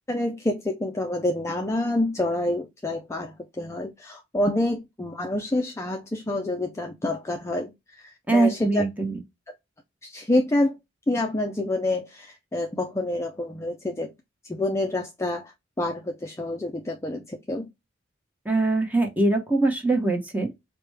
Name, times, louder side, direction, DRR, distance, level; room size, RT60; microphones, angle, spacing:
voice 1, 0.1-8.8 10.0-10.7 11.1-14.1 14.5-15.5 15.8-17.7, left 1 dB, 15° left, 0.4 m, -27 dB
voice 2, 8.3-9.2 18.4-20.5, right 2 dB, 10° right, 1.0 m, -22 dB
4.9 x 2.2 x 3.2 m
head